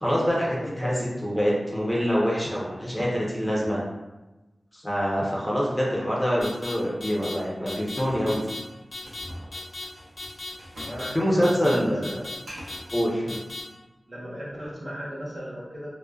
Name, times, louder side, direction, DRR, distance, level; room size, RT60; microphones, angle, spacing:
voice 1, 0.0-0.9 1.2-3.8 4.7-8.4 11.1-12.1 12.9-13.4, equal, 15° left, -5 dB, 0.6 m, -25 dB
voice 2, 0.6-0.9 10.9-12.0 14.1-15.9, equal, 50° right, -7 dB, 1.0 m, -36 dB
sound 1, 6.4-6.7 7.0-7.3 7.7-8.0 8.3-8.6 8.9-9.2 9.5-9.8 10.2-10.5 10.8-11.1 11.4-11.7 12.0-12.4 12.7-13.0 13.3-13.6, left 2 dB, 65° left, 0.7 m, -36 dB
sound 2, 7.9-11.1 11.3-12.9, equal, 80° right, 0.7 m, -43 dB
2.5 x 2.1 x 2.3 m, 1.1 s
wide cardioid pair, 55°, 0 cm